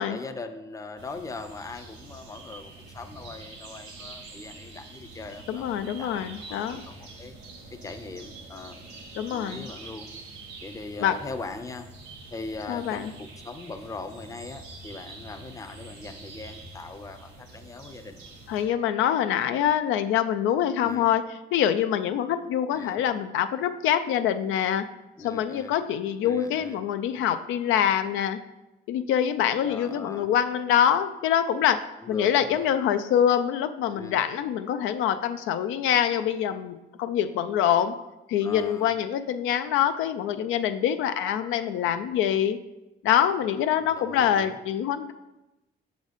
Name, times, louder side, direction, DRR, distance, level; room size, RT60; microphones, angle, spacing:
voice 1, 0.0-7.4 7.7-8.8 9.3-10.1 10.6-11.9 12.3-18.2 20.8-21.1 22.7-23.0 25.2-25.7 26.2-26.8 29.6-30.3 32.0-32.7 33.9-34.2 38.4-38.9 41.2-41.6 43.8-44.6, left 3 dB, 15° left, 8 dB, 0.5 m, -40 dB
sound 1, 1.0-18.6, right 3 dB, 85° right, 1.7 m, -45 dB
voice 2, 5.5-6.8 9.2-9.7 11.0-11.1 12.7-13.1 18.5-21.2 21.5-24.8 25.2-28.4 28.9-31.8 32.1-37.9 38.3-42.6 43.0-45.1, left 9 dB, 90° left, 10 dB, 0.4 m, -25 dB
6.2 x 4.0 x 4.9 m, 1.0 s
cardioid pair, 90°, 20 cm